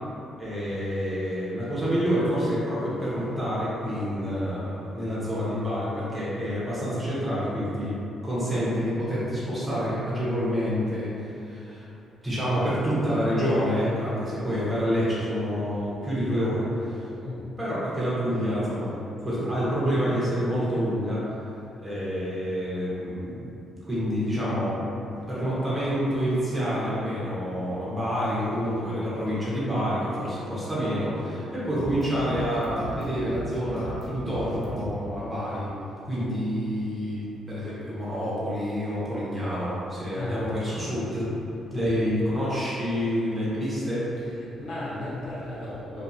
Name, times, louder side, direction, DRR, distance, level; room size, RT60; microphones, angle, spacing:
voice 1, 0.4-8.0 8.2-11.9 12.2-17.0 17.6-18.9 19.2-21.2 21.8-23.5 23.8-35.7 36.1-41.3 41.7-44.0, equal, 10° right, -9 dB, 0.9 m, -28 dB
sound 1, 28.1-34.9, equal, 45° left, 0.5 m, -40 dB
voice 2, 40.1-40.5 41.7-42.1 44.2-46.0, left 1 dB, 80° left, -9 dB, 1.0 m, -36 dB
2.5 x 2.4 x 2.7 m, 2.8 s
cardioid pair, 90°, 0 cm